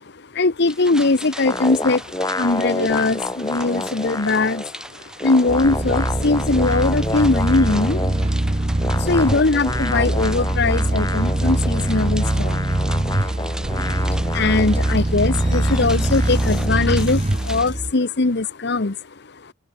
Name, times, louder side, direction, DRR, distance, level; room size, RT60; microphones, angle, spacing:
voice 1, 0.0-4.8 5.2-8.3 8.6-13.2 13.6-19.0 19.4-19.5, left 3 dB, 55° left, 1.0 m, -21 dB
sound 1, 0.6-17.7, right 1 dB, 5° right, 4.9 m, -39 dB
sound 2, 1.5-4.7 5.0-8.3 8.8-16.8, left 2 dB, 15° left, 2.9 m, -29 dB
sound 3, 5.5-17.9, right 1 dB, 30° right, 1.0 m, -22 dB
open air
head